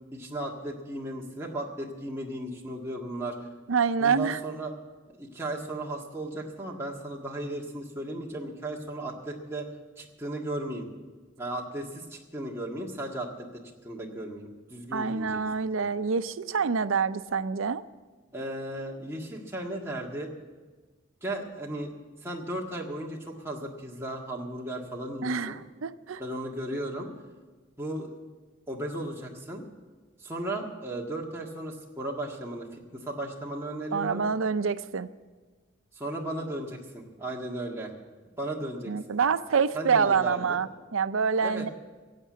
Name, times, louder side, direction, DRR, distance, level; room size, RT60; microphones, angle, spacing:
voice 1, 0.1-3.4 4.0-4.7 5.1-9.7 10.0-10.9 11.4-15.9 18.3-20.3 21.2-21.9 22.2-25.6 26.2-27.1 27.8-28.1 28.7-29.6 30.2-34.2 35.9-37.9 38.4-39.2 39.7-40.6 41.4-41.7, right 1 dB, 15° right, -2 dB, 1.6 m, -35 dB
voice 2, 3.7-4.4 14.9-17.8 25.2-26.2 33.9-35.1 38.9-41.7, right 6 dB, 90° right, 13 dB, 0.5 m, -26 dB
15.5 x 8.3 x 8.5 m, 1.3 s
head